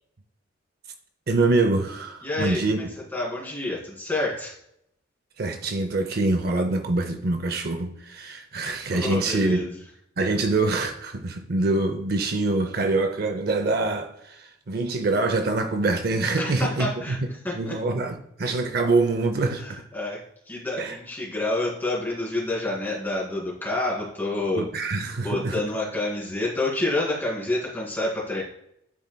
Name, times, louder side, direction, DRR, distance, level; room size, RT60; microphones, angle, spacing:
voice 1, 1.3-2.8 5.4-9.6 10.2-17.2 17.5-19.8 20.8-21.0 24.5-25.6, right 3 dB, 50° right, 0.5 m, -25 dB
voice 2, 2.2-2.8 3.1-4.5 8.9-9.7 16.4-17.2 17.4-17.7 19.6-20.2 20.5-24.7 25.2-28.4, left 2 dB, 10° left, 2.3 m, -28 dB
11.0 x 4.3 x 2.2 m
head